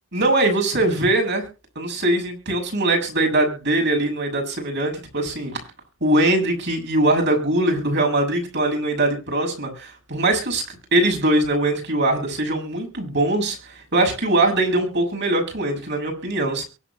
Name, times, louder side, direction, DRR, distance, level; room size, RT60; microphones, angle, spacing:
voice 1, 0.1-1.5 1.8-5.5 6.0-10.6 10.9-16.6, right 1 dB, 55° right, 2 dB, 7.0 m, -21 dB
23.5 x 8.6 x 3.0 m, 0.32 s
head